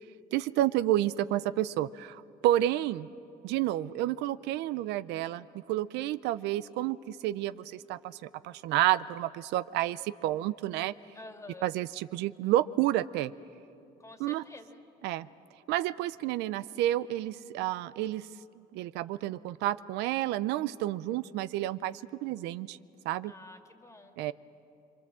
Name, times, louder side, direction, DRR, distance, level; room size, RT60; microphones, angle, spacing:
voice 1, 0.3-3.1 3.4-10.9 11.6-13.3 14.2-14.4 15.0-15.3 15.7-18.3 18.6-22.8 23.0-23.3 24.2-24.3, right 14 dB, 90° right, 16 dB, 0.5 m, -30 dB
voice 2, 11.1-11.7 14.0-14.8 23.2-24.3, left 2 dB, 15° left, 6 dB, 2.1 m, -49 dB
27.5 x 23.5 x 7.5 m, 2.6 s
cardioid pair, 110°, 17 cm